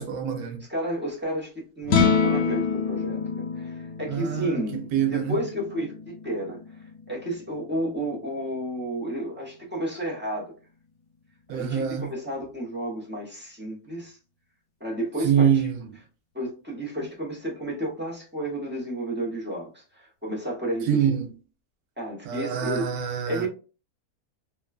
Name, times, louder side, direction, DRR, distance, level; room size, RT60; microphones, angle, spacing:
voice 1, 0.0-0.6 4.1-5.3 11.5-12.1 15.2-15.8 20.9-21.3 22.3-23.5, right 8 dB, 90° right, 1.1 m, -25 dB
voice 2, 0.6-4.8 5.1-6.6 7.1-10.5 11.5-14.2 14.8-15.6 16.3-21.1 22.0-23.5, right 1 dB, 15° right, 0.4 m, -32 dB
sound 1, 1.8-8.2, left 5 dB, 65° left, 0.7 m, -28 dB
2.9 x 2.2 x 2.3 m
omnidirectional pair, 1.6 m